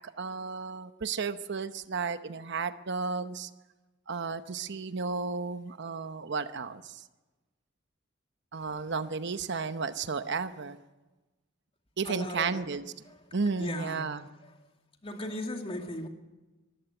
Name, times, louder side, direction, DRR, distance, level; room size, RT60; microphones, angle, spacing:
voice 1, 0.2-3.5 4.1-7.0 8.5-10.8 12.0-12.8 13.3-14.3, right 4 dB, 60° right, 11 dB, 0.9 m, -33 dB
voice 2, 12.0-12.7 13.0-14.6 15.0-16.1, left 1 dB, 30° left, 4 dB, 2.4 m, -38 dB
23.0 x 15.0 x 9.2 m, 1.1 s
head